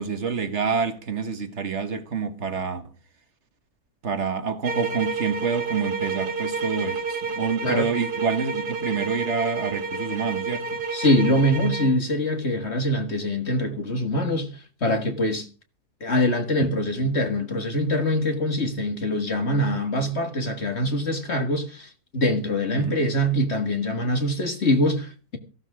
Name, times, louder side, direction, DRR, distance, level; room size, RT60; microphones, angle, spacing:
voice 1, 0.0-2.8 4.0-10.8 22.7-23.0, right 5 dB, 50° right, 1.8 m, -27 dB
sound 1, 4.6-12.0, right 4 dB, 85° right, 2.4 m, -30 dB
voice 2, 10.9-14.5 14.8-15.5 16.0-25.4, left 1 dB, 45° left, 2.0 m, -24 dB
15.5 x 12.0 x 4.9 m
omnidirectional pair, 1.6 m